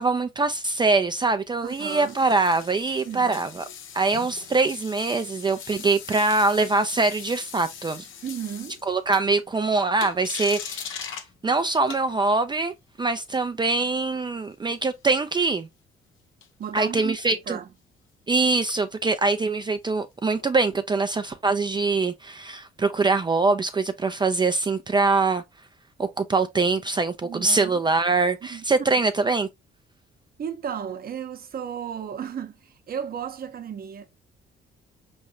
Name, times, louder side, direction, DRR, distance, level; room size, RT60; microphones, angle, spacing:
voice 1, 0.0-3.6 3.9-8.1 8.9-11.1 11.4-15.7 16.7-17.6 18.3-25.4 26.0-29.5, right 3 dB, 20° right, 0.4 m, -23 dB
sound 1, 1.4-9.6 10.0-11.3 11.9-12.4 16.4-16.8 20.4-20.5, left 8 dB, 80° left, 0.7 m, -40 dB
voice 2, 1.6-2.2 3.0-3.3 8.2-8.8 16.6-17.1 17.5-17.7 27.2-27.8 28.5-28.6 30.4-34.1, right 8 dB, 50° right, 0.8 m, -34 dB
4.6 x 3.1 x 2.7 m
cardioid pair, 90°, 20 cm